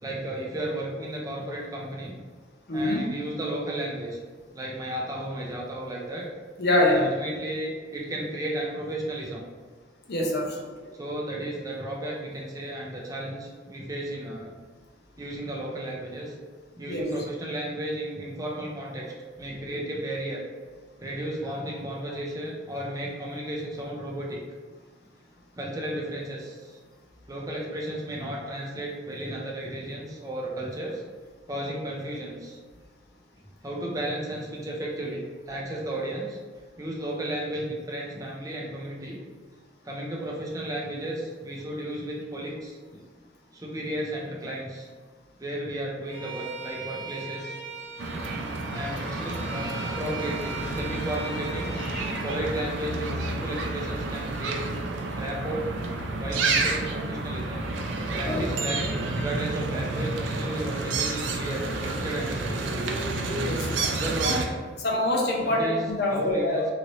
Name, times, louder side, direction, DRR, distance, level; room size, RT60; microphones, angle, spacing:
voice 1, 0.0-2.1 2.7-4.2 4.5-6.2 6.8-9.4 10.9-14.5 15.2-16.3 16.8-20.4 21.0-24.4 25.6-26.8 27.3-31.0 31.5-32.6 33.6-36.4 36.8-39.2 39.8-42.8 43.5-44.9 45.4-47.6 48.7-51.8 52.2-54.7 55.1-55.7 56.2-57.6 58.1-62.9 63.8-64.6 65.4-65.8 66.1-66.7, right 1 dB, 20° right, -3 dB, 0.5 m, -33 dB
voice 2, 2.7-3.1 6.6-7.0 10.1-10.9 16.9-17.1 58.2-58.4 63.4-63.7 64.2-64.3 64.8-66.7, left 1 dB, 60° left, -1 dB, 0.6 m, -25 dB
Bowed string instrument, 46.1-52.4, right 3 dB, 15° left, 1.3 m, -39 dB
sound 1, 48.0-64.5, right 3 dB, 80° right, 0.4 m, -30 dB
2.9 x 2.6 x 3.0 m, 1.5 s
head